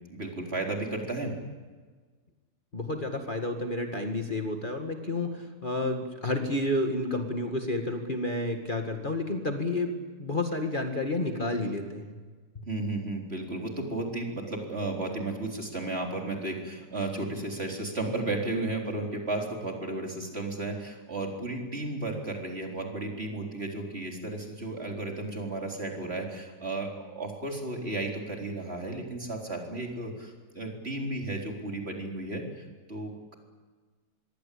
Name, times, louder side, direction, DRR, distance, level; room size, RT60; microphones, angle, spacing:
voice 1, 0.1-1.3 12.7-33.4, right 2 dB, 40° right, 1 dB, 4.2 m, -34 dB
voice 2, 2.7-9.9 10.2-12.2 12.6-12.7, left 2 dB, 30° left, 4 dB, 2.1 m, -30 dB
25.5 x 22.0 x 8.5 m, 1.4 s
omnidirectional pair, 1.7 m